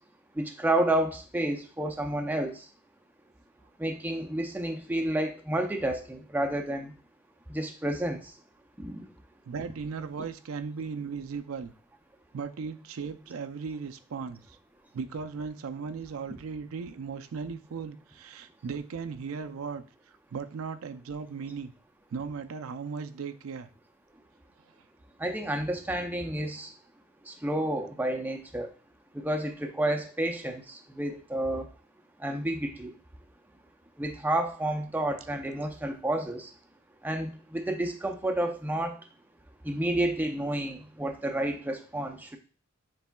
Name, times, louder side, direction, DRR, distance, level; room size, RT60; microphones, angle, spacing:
voice 1, 0.4-2.6 3.8-6.9 7.5-8.2 8.8-9.0 25.2-26.7 27.3-28.7 29.1-31.7 32.2-32.9 34.0-36.5 37.0-39.0 39.6-42.4, right 1 dB, 10° right, 4 dB, 0.5 m, -30 dB
voice 2, 9.5-11.7 12.3-14.6 14.9-19.8 20.3-21.7 22.1-23.7, right 5 dB, 80° right, 9 dB, 0.4 m, -37 dB
7.0 x 3.4 x 2.3 m, 0.38 s
head